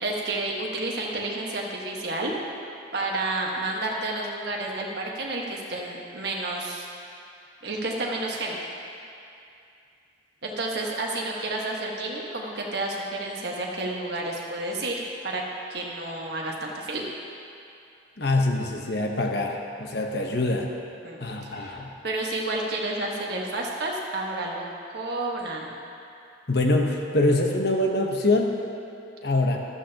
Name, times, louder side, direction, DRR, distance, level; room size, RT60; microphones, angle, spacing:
voice 1, 0.0-2.3 2.9-6.8 7.6-8.6 10.4-15.4 15.7-17.0 20.3-20.5 21.0-21.8 22.0-24.7 24.9-25.7, right 2 dB, 55° right, -2 dB, 1.5 m, -30 dB
voice 2, 18.2-20.7 21.2-21.9 26.5-28.6 29.2-29.6, left 2 dB, 55° left, 1 dB, 1.0 m, -24 dB
13.5 x 12.5 x 2.9 m, 2.6 s
head